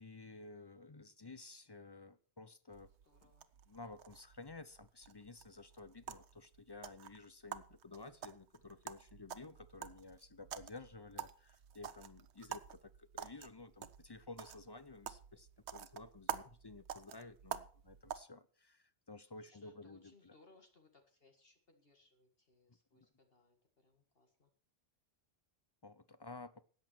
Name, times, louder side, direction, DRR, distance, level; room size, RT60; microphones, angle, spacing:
voice 1, 0.0-2.9 3.7-20.3 22.9-23.1 25.8-26.6, left 3 dB, 30° left, 15 dB, 0.5 m, -53 dB
sound 1, 2.7-18.2, right 8 dB, 75° right, 1.1 m, -49 dB
voice 2, 3.0-3.5 19.2-24.5, left 2 dB, 55° left, 4 dB, 2.1 m, -68 dB
13.5 x 9.0 x 6.1 m, 0.42 s
omnidirectional pair, 1.1 m